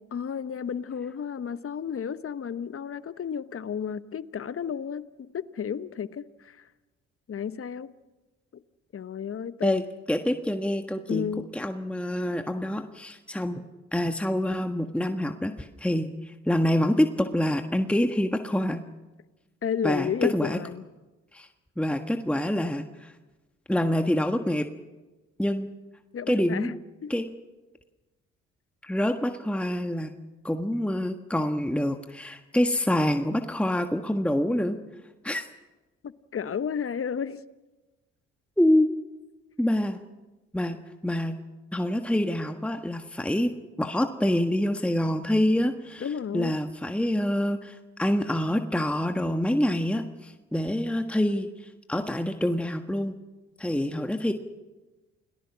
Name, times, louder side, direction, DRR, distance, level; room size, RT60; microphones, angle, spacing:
voice 1, 0.1-6.6 7.3-7.9 8.9-9.8 11.1-11.5 19.6-20.8 26.1-26.7 27.0-27.1 36.0-37.4 46.0-46.6, left 7 dB, 40° left, 14 dB, 1.1 m, -32 dB
voice 2, 10.1-13.6 13.9-18.8 19.8-20.6 21.3-21.5 21.8-23.1 23.7-24.7 25.4-25.7 26.3-26.7 27.1-27.3 28.8-30.1 30.4-34.8 35.2-35.4 38.6-38.9 39.6-40.0 40.5-41.4 41.7-43.5 43.8-46.1 46.3-53.2 53.6-54.3, left 1 dB, 5° left, 6 dB, 1.5 m, -26 dB
29.0 x 19.0 x 6.2 m, 1.2 s
hypercardioid pair, 45°, 33 cm